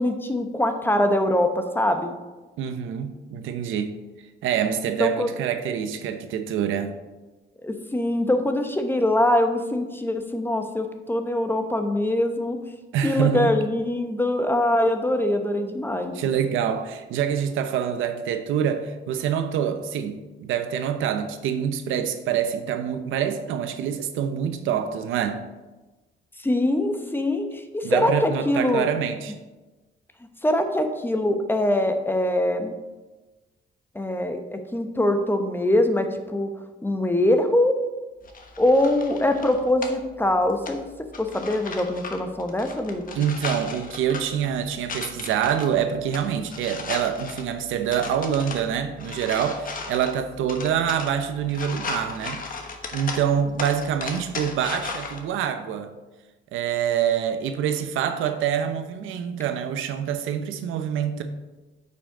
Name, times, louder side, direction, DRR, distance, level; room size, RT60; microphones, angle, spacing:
voice 1, 0.0-2.1 5.0-5.3 7.6-12.6 13.0-16.2 26.4-28.9 30.4-32.7 33.9-36.5 36.8-37.8 38.6-40.8 41.2-43.2, left 1 dB, 10° left, 0.9 m, -23 dB
voice 2, 2.6-4.0 4.4-7.0 12.9-13.5 16.1-25.5 27.8-29.4 43.1-52.5 52.9-55.9 56.5-61.2, right 8 dB, 85° right, 0.7 m, -26 dB
sound 1, 38.2-55.2, left 4 dB, 45° left, 1.2 m, -37 dB
8.8 x 5.7 x 3.8 m
cardioid pair, 90°, 20 cm